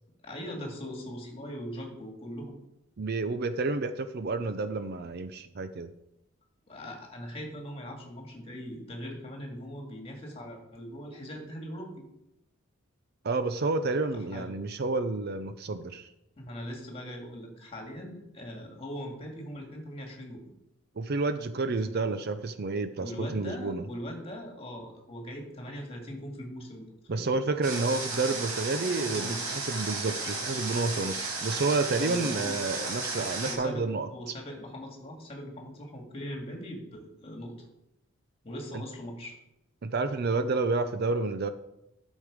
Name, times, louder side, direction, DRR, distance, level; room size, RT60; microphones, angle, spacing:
voice 1, 0.2-2.6 6.7-11.9 14.1-14.5 16.4-20.4 21.8-22.1 23.0-27.3 28.9-29.5 32.0-32.6 33.4-37.5 38.4-39.4, equal, 25° left, 1 dB, 2.2 m, -40 dB
voice 2, 3.0-5.9 13.2-16.1 21.0-23.8 27.1-34.1 39.8-41.5, right 3 dB, 50° right, 11 dB, 0.5 m, -30 dB
Water, 27.6-33.5, right 3 dB, 85° right, 2.6 m, -34 dB
12.0 x 6.4 x 5.0 m, 0.86 s
head